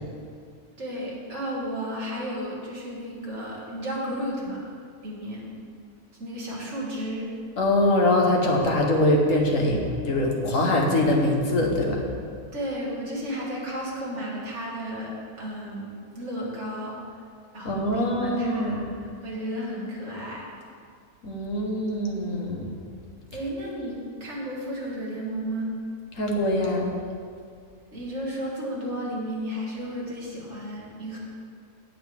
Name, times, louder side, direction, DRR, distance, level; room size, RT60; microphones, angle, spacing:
voice 1, 0.8-4.7 5.0-5.4 6.2-7.4 12.5-15.9 16.2-17.2 17.5-20.5 23.3-25.7 27.9-31.2, equal, 50° right, -5 dB, 2.4 m, -33 dB
voice 2, 7.6-12.0 17.6-18.9 21.2-22.7 26.2-26.9, left 1 dB, 60° left, 0 dB, 1.6 m, -23 dB
17.0 x 5.8 x 3.5 m, 2.2 s
omnidirectional pair, 1.6 m